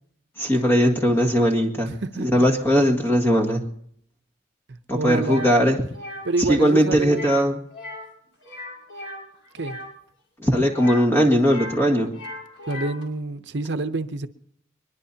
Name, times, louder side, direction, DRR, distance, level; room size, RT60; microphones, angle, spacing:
voice 1, 0.4-1.9 2.2-3.6 4.9-5.8 6.5-7.6 10.4-12.1, equal, 10° left, 1 dB, 1.9 m, -19 dB
voice 2, 1.9-2.4 4.7-5.5 6.2-7.3 9.5-9.8 12.7-14.3, right 3 dB, 60° right, 9 dB, 0.7 m, -28 dB
sound 1, 5.2-5.5 5.9-6.3 7.0-7.4 7.7-8.1 8.4-9.9 10.7-11.8 12.1-13.0, left 1 dB, 80° left, 5.3 m, -37 dB
23.0 x 22.0 x 2.8 m, 0.66 s
head